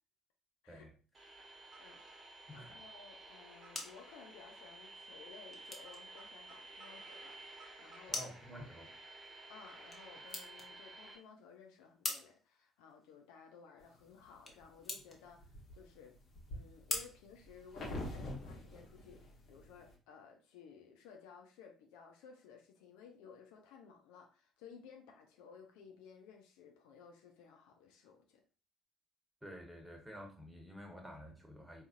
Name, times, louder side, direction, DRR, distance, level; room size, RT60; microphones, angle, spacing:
sound 1, 1.1-11.2, right 2 dB, 30° right, 1.0 m, -53 dB
voice 1, 1.5-2.0 2.5-7.4 7.8-8.3 9.5-16.2 16.5-28.4, left 6 dB, 65° left, 2 dB, 0.5 m, -57 dB
voice 2, 2.5-2.9 8.1-8.9 29.4-31.8, equal, 5° right, 2 dB, 1.2 m, -50 dB
sound 2, 3.3-18.2, left 2 dB, 25° left, 0.9 m, -48 dB
sound 3, 13.9-14.6 15.1-19.9, left 1 dB, 45° left, 1.1 m, -46 dB
4.1 x 2.4 x 2.5 m, 0.37 s
figure-of-eight pair, 50°, 0 cm